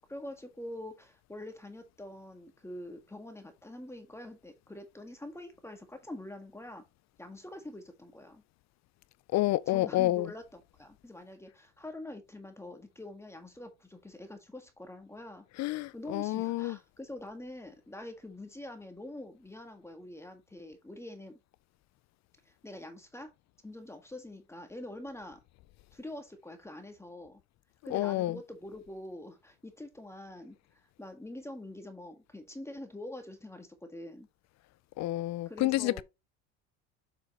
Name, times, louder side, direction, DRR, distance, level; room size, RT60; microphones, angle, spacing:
voice 1, 0.0-6.8 7.2-8.4 9.7-15.4 15.9-21.4 22.4-23.3 23.6-25.4 25.9-27.4 27.8-34.3 35.4-36.0, left 1 dB, 5° left, 1.6 m, -45 dB
voice 2, 9.3-10.3 15.6-16.8 27.9-28.4 35.0-36.0, left 17 dB, 50° left, 0.4 m, -29 dB
7.3 x 5.8 x 2.9 m
supercardioid pair, 110°, 37 cm